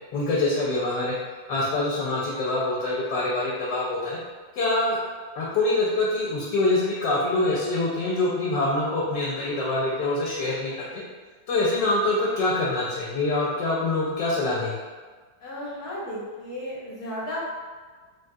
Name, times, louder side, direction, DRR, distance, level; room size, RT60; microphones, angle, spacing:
voice 1, 0.1-1.1 1.5-4.2 4.5-5.0 5.3-11.0 11.5-14.8, left 2 dB, 80° left, -5 dB, 1.2 m, -25 dB
voice 2, 15.4-17.4, left 1 dB, 65° left, -6 dB, 1.3 m, -34 dB
3.5 x 2.2 x 2.6 m, 1.4 s
omnidirectional pair, 1.9 m